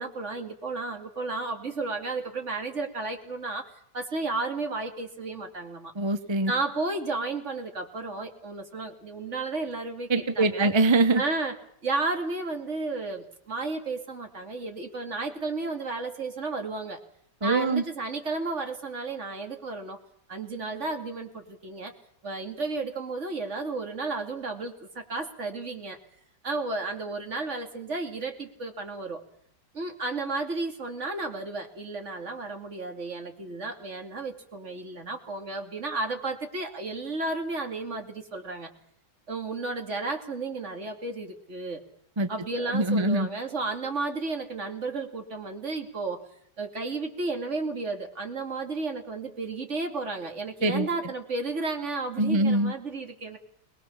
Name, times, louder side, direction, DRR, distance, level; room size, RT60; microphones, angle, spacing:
voice 1, 0.0-3.7 3.9-5.9 6.5-10.7 11.1-11.5 11.8-17.0 17.4-20.0 20.3-21.9 22.2-26.0 26.4-29.2 29.7-38.7 39.3-41.8 42.3-46.2 46.6-53.4, right 3 dB, 40° right, 4 dB, 2.9 m, -33 dB
voice 2, 6.0-6.5 10.1-11.2 17.4-17.8 42.2-42.3 42.7-43.3 50.6-50.9 52.2-52.7, right 2 dB, 25° right, 10 dB, 0.7 m, -23 dB
23.0 x 20.0 x 7.2 m, 0.67 s
omnidirectional pair, 1.8 m